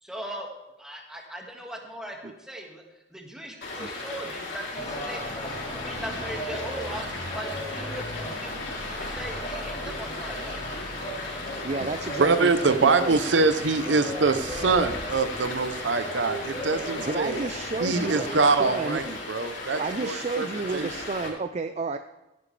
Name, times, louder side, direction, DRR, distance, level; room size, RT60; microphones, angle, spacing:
voice 1, 0.0-0.5 0.8-2.8 3.1-7.1 7.3-8.7 9.0-10.6, right 1 dB, 5° right, 0 dB, 1.8 m, -39 dB
Stream, 3.6-21.3, left 2 dB, 80° left, 4.1 m, -36 dB
sound 1, 4.7-19.0, equal, 30° left, 3.5 m, -37 dB
voice 2, 11.6-13.2 17.0-18.3 18.6-19.0 19.8-22.0, right 3 dB, 35° right, 9 dB, 0.4 m, -31 dB
voice 3, 12.2-17.4 17.8-20.5 20.7-20.9, right 4 dB, 80° right, 11 dB, 0.7 m, -24 dB
15.0 x 10.5 x 3.3 m, 1.0 s
head